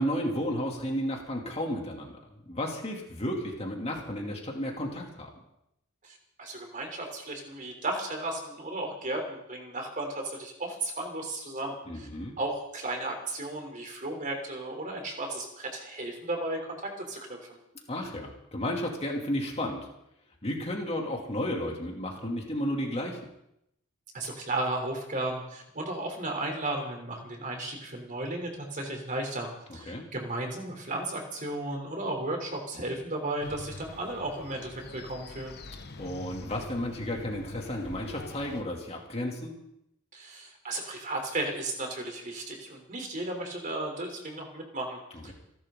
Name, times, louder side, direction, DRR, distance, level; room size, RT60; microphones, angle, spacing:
voice 1, 0.0-5.3 11.9-12.3 17.9-19.8 20.4-23.2 29.9-30.0 36.0-39.5 45.1-45.3, equal, 30° left, 0 dB, 2.8 m, -33 dB
voice 2, 6.0-12.1 12.4-17.6 24.1-35.6 40.1-45.3, right 2 dB, 40° right, 3 dB, 3.5 m, -34 dB
sound 1, 33.4-38.6, left 2 dB, 50° left, 1.2 m, -44 dB
29.5 x 12.0 x 3.9 m, 0.81 s
head